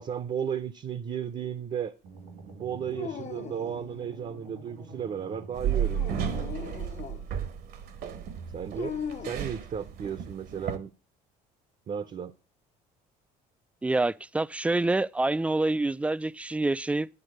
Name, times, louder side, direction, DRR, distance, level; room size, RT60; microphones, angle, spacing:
voice 1, 0.0-1.9 2.6-6.7 8.5-8.9 9.2-10.9 11.9-12.3, right 8 dB, 45° right, 0.7 m, -34 dB
sound 1, 2.0-6.3, right 3 dB, 85° right, 2.7 m, -47 dB
Dog, 2.9-3.9 5.8-7.3 8.8-9.5, left 7 dB, 40° left, 0.8 m, -39 dB
sound 2, 5.5-10.8, right 8 dB, 70° right, 1.3 m, -33 dB
voice 2, 13.8-17.1, right 2 dB, 5° right, 0.4 m, -27 dB
11.0 x 4.0 x 6.4 m
supercardioid pair, 75°, 17 cm